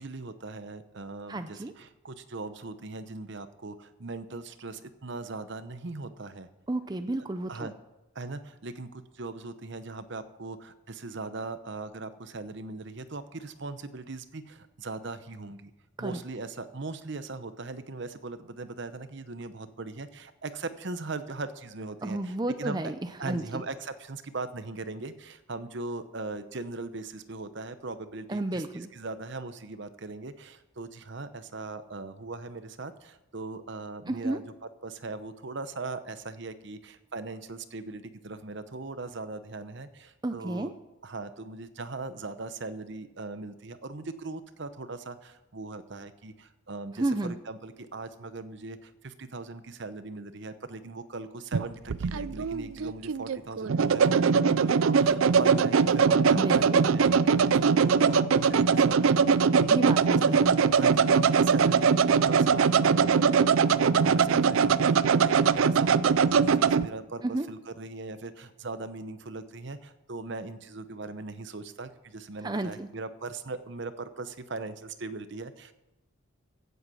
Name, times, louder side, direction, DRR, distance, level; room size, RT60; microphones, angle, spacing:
voice 1, 0.0-6.5 7.5-7.7 8.1-15.7 16.0-22.9 23.2-34.4 34.8-40.7 41.0-56.7 56.9-60.2 60.7-75.7, right 3 dB, 55° right, 12 dB, 0.8 m, -39 dB
voice 2, 1.3-1.7 6.7-7.7 16.0-16.2 22.0-22.9 23.2-23.6 28.3-28.9 34.1-34.4 40.2-40.7 46.9-47.3 56.3-56.8 59.7-60.5 67.2-67.5 72.4-72.9, right 2 dB, 20° right, 8 dB, 0.5 m, -31 dB
sound 1, 51.5-66.9, right 6 dB, 75° right, 0.4 m, -22 dB
16.0 x 8.1 x 6.3 m, 0.97 s
head